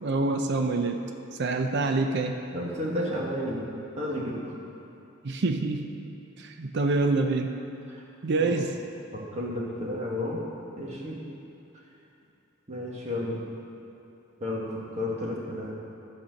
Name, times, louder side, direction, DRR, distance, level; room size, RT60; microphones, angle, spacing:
voice 1, 0.0-1.1 1.4-2.3 5.2-6.0 6.4-7.5 8.2-8.8, right 3 dB, 55° right, 5 dB, 0.5 m, -26 dB
voice 2, 2.5-3.7 4.0-4.5 7.9-8.0 8.4-8.6 9.1-10.4 10.8-11.2 12.7-13.4 14.4-15.7, left 1 dB, 30° right, -4 dB, 1.5 m, -32 dB
11.5 x 4.3 x 6.4 m, 2.8 s
head